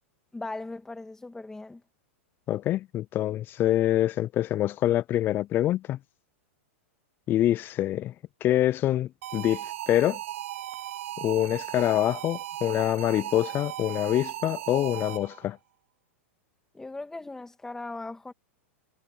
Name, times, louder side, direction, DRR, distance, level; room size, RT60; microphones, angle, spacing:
voice 1, 0.3-1.8 16.7-18.3, left 2 dB, 5° left, 2.5 m, -38 dB
voice 2, 2.5-6.0 7.3-8.1 8.4-10.2 11.2-15.6, left 13 dB, 30° left, 0.4 m, -25 dB
sound 1, 9.2-15.5, right 14 dB, 70° right, 0.5 m, -37 dB
hypercardioid pair, 125°, 7 cm